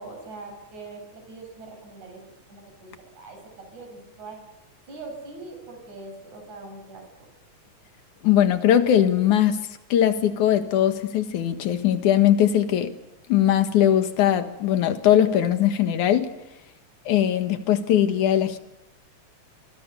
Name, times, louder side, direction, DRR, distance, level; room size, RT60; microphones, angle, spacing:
voice 1, 0.0-4.4 4.9-7.0, right 3 dB, 65° right, 8.5 m, -42 dB
voice 2, 8.2-12.9 13.3-16.3 17.1-18.6, left 10 dB, 75° left, 3.0 m, -20 dB
28.0 x 25.5 x 6.9 m
omnidirectional pair, 3.5 m